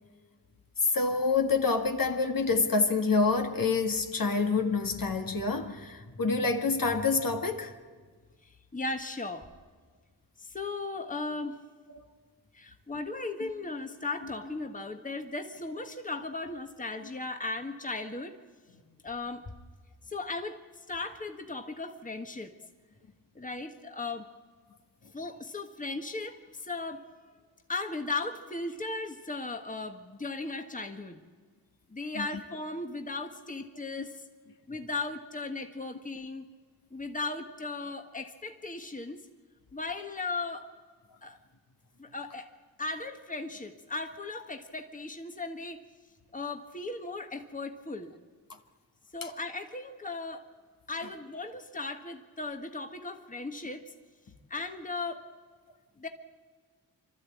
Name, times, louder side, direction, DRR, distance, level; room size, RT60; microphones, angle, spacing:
voice 1, 0.8-7.8 11.9-12.1 13.4-13.5 32.2-32.3 34.0-34.1 49.2-49.3, left 4 dB, 55° left, 1.9 m, -27 dB
voice 2, 8.7-9.5 10.4-11.6 12.5-18.3 19.0-19.5 20.1-20.6 20.9-22.5 23.3-24.3 25.1-27.0 27.7-31.2 31.9-34.2 34.7-36.4 36.9-39.2 39.7-40.7 41.2-41.4 42.0-42.5 42.8-45.8 46.3-48.1 49.1-50.4 50.9-53.9 54.5-55.2 56.0-56.1, left 3 dB, 20° left, 1.5 m, -37 dB
26.0 x 12.5 x 8.5 m
cardioid pair, 50°, 41 cm